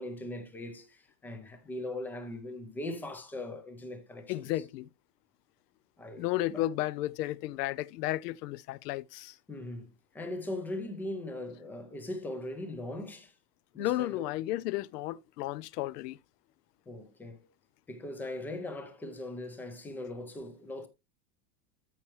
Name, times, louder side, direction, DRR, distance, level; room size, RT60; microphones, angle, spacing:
voice 1, 0.0-4.6 6.0-6.7 9.5-13.3 13.7-14.2 16.9-17.5 17.9-20.9, left 1 dB, 5° left, 0.4 m, -40 dB
voice 2, 4.3-4.9 6.2-9.3 13.8-16.2, left 15 dB, 70° left, 0.7 m, -33 dB
13.5 x 5.7 x 3.0 m
supercardioid pair, 170°, 50 cm